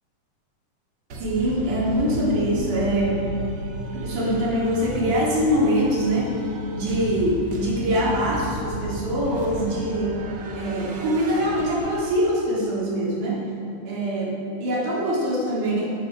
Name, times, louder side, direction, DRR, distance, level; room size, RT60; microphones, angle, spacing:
sound 1, 1.1-12.5, right 1 dB, 50° right, 1.4 m, -34 dB
voice 1, 1.2-3.3 3.9-6.4 6.7-10.3 10.5-13.5 13.9-15.9, equal, 70° right, -5 dB, 4.5 m, -23 dB
13.0 x 12.5 x 6.1 m, 2.8 s
omnidirectional pair, 3.7 m